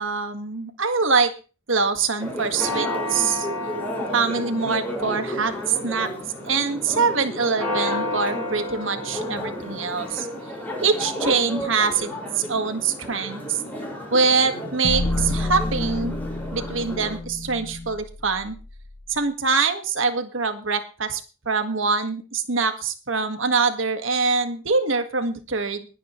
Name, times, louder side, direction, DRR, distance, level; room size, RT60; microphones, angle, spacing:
voice 1, 0.0-1.3 1.7-3.5 4.1-6.1 6.5-10.3 10.8-13.6 14.1-16.1 16.5-18.5 19.1-21.2 21.4-25.9, right 4 dB, 75° right, 8 dB, 1.8 m, -24 dB
Church bell, 2.2-17.2, left 1 dB, 10° left, 5.8 m, -31 dB
sound 1, 14.8-19.0, left 2 dB, 85° left, 0.9 m, -29 dB
20.0 x 10.0 x 3.2 m, 0.34 s
head